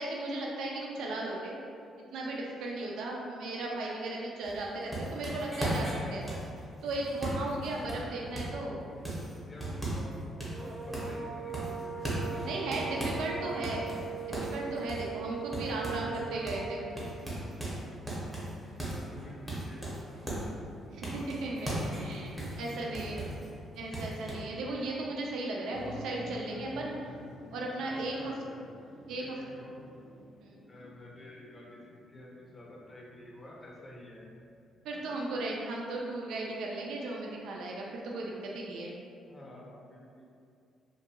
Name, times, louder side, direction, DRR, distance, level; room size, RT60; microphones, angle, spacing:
voice 1, 0.0-1.5 2.1-6.4 6.8-8.8 12.5-13.9 14.5-16.8 20.9-23.3 23.7-26.9 27.5-28.3 29.1-29.4 30.4-30.5 34.8-39.0, right 2 dB, 80° right, -2 dB, 0.3 m, -36 dB
sound 1, 4.4-8.6 9.0-10.1 10.4-11.2 11.5-13.3 13.6-16.2 16.5-16.7 17.0-20.5 21.0-23.5 23.9-24.3, right 1 dB, 5° right, 0.7 m, -37 dB
voice 2, 9.4-10.3 10.6-13.8 15.9-17.1 18.8-20.5 22.3-23.4 25.5-26.0 26.5-27.3 27.9-28.6 29.2-29.8 30.7-31.8 32.1-34.2 39.3-40.3, left 1 dB, 30° left, -4 dB, 0.6 m, -50 dB
sound 2, 10.4-17.0, right 7 dB, 35° right, 0.6 m, -40 dB
Motor vehicle (road), 25.7-34.7, left 1 dB, 85° left, 0.4 m, -50 dB
2.5 x 2.2 x 2.7 m, 2.4 s
cardioid pair, 90°, 0 cm